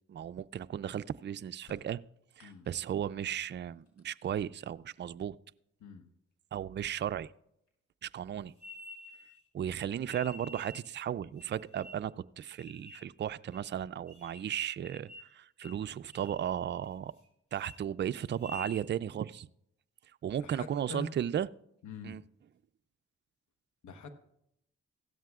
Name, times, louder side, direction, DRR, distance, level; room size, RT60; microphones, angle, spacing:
voice 1, 0.1-2.0 2.4-5.4 6.5-7.3 8.0-8.5 9.5-17.1 17.5-19.5 20.2-21.5 22.0-22.2, right 9 dB, 40° right, 14 dB, 0.4 m, -35 dB
sound 1, 1.6-3.0 3.6-4.8 5.8-5.9 6.9-7.0 7.5-7.9, left 1 dB, 55° left, 5.4 m, -61 dB
sound 2, 8.6-9.4 10.1-10.9 11.4-12.1 12.6-13.1 13.5-13.6 14.1-14.5 14.8-15.3 15.6-15.8 16.1-16.4 16.8-17.3 17.5-17.8 18.3-18.9, equal, 25° left, 3.1 m, -49 dB
voice 2, 20.4-21.1 21.8-22.2 23.8-24.1, left 4 dB, 80° left, 9 dB, 1.1 m, -44 dB
16.0 x 13.0 x 2.4 m, 0.77 s
cardioid pair, 60°, 30 cm